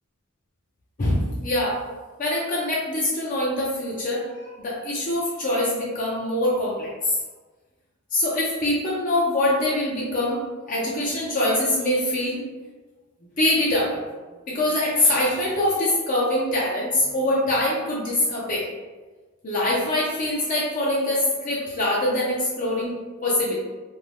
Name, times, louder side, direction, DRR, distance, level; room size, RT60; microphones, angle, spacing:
voice 1, 1.0-1.8 2.2-7.1 8.1-12.5 13.4-14.0 14.5-18.7 19.4-22.9 23.2-23.6, left 1 dB, 40° left, -5 dB, 0.5 m, -24 dB
2.6 x 2.1 x 3.1 m, 1.3 s
head